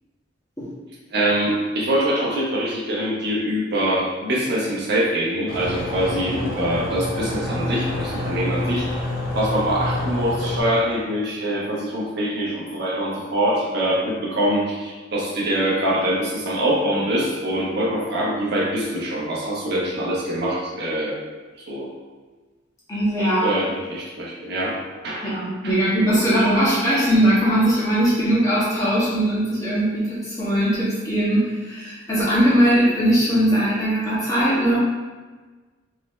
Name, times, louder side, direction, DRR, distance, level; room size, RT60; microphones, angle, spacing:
voice 1, 1.1-8.9 9.3-21.2 21.7-21.9 23.4-25.4 25.6-25.7, right 1 dB, 55° right, -5 dB, 1.0 m, -24 dB
sound 1, 5.5-10.6, left 1 dB, 45° left, 1.2 m, -27 dB
voice 2, 22.9-23.5 25.2-34.8, right 1 dB, 15° left, -10 dB, 1.5 m, -20 dB
3.8 x 3.2 x 3.2 m, 1.3 s
head